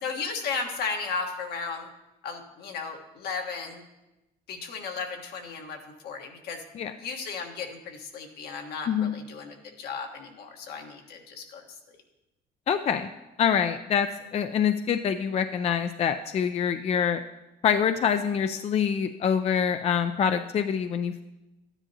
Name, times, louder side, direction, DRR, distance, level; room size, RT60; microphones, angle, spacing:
voice 1, 0.0-1.9 2.2-3.8 4.5-6.6 7.0-11.6, left 5 dB, 70° left, 3 dB, 1.4 m, -35 dB
voice 2, 12.7-13.1 13.4-14.1 14.3-17.2 17.6-21.2, left 7 dB, 40° left, 8 dB, 0.4 m, -25 dB
13.0 x 9.9 x 2.8 m, 0.98 s
cardioid pair, 110°, 17 cm